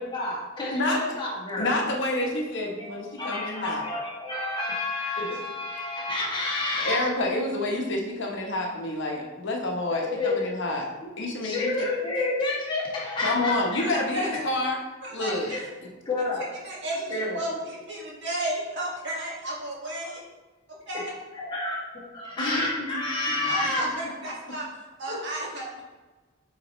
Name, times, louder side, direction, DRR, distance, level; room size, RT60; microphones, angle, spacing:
voice 1, 0.0-1.8 2.8-7.0 9.9-10.4 11.4-13.9 15.4-15.6 16.0-16.5 17.1-17.5 20.9-21.0 21.4-23.9 25.1-25.5, left 2 dB, 25° left, -5 dB, 1.6 m, -30 dB
voice 2, 1.6-3.8 6.8-10.9 11.2-11.9 13.2-14.8 15.1-15.5 22.4-23.0, left 2 dB, 60° left, 0 dB, 1.0 m, -28 dB
voice 3, 13.8-14.4 15.0-15.6 16.6-20.2 20.7-21.0 23.5-24.7 25.0-25.8, right 1 dB, 60° right, -4 dB, 1.8 m, -33 dB
8.3 x 4.1 x 3.1 m, 1.2 s
head